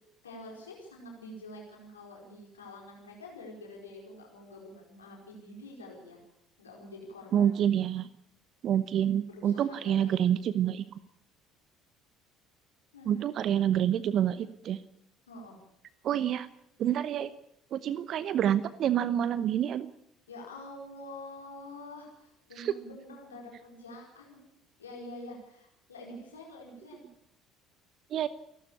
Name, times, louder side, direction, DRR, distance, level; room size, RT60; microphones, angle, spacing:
voice 1, 0.2-6.2 6.6-7.5 9.3-10.3 12.9-13.2 15.3-15.6 20.3-24.5 24.8-27.1, left 1 dB, 80° left, 0 dB, 4.6 m, -47 dB
voice 2, 7.3-8.1 8.6-10.8 13.0-14.8 16.0-16.5 16.8-17.3 17.7-19.9 22.6-22.7 28.1-28.3, right 10 dB, 50° right, 16 dB, 0.9 m, -27 dB
29.0 x 12.0 x 8.5 m, 0.78 s
figure-of-eight pair, 55°, 0 cm